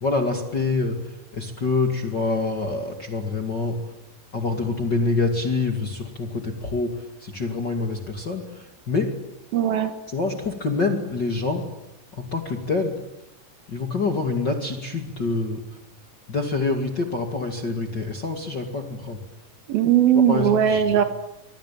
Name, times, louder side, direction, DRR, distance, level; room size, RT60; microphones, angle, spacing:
voice 1, 0.0-3.8 4.3-9.1 10.1-11.6 12.1-13.0 13.7-15.6 16.3-19.2 20.3-21.0, left 3 dB, 35° left, 4 dB, 2.1 m, -26 dB
voice 2, 9.5-9.9 19.7-21.0, right 9 dB, 65° right, 9 dB, 3.2 m, -19 dB
25.0 x 23.0 x 9.0 m, 0.90 s
omnidirectional pair, 4.8 m